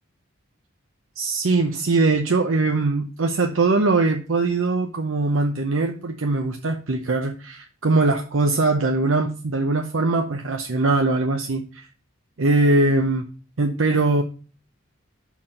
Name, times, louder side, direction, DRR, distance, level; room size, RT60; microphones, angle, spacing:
voice 1, 1.2-11.9 12.4-13.3 13.6-14.2, right 3 dB, 75° right, 3 dB, 0.7 m, -21 dB
5.6 x 4.6 x 6.4 m, 0.38 s
head